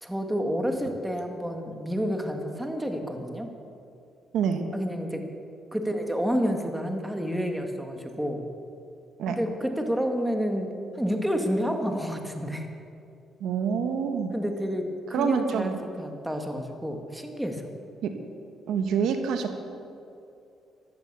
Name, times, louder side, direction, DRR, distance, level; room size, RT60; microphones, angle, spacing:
voice 1, 0.0-3.5 4.7-5.3 5.7-8.4 9.3-10.7 10.9-12.7 14.3-17.7, equal, 5° right, 4 dB, 2.0 m, -29 dB
voice 2, 13.4-14.3 15.1-15.8 18.0-18.1 18.7-19.5, right 6 dB, 80° right, 6 dB, 1.4 m, -26 dB
15.5 x 12.0 x 6.9 m, 2.6 s
cardioid pair, 90°, 0 cm